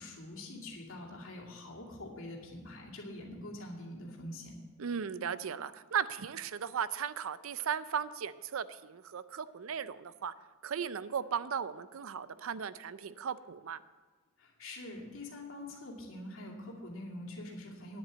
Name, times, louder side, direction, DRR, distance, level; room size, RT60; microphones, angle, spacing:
voice 1, 0.0-4.5 14.4-18.0, left 1 dB, 75° left, -2 dB, 2.4 m, -45 dB
voice 2, 4.8-10.3 10.6-13.8, right 7 dB, 75° right, 15 dB, 0.5 m, -36 dB
10.5 x 7.6 x 8.1 m, 1.4 s
head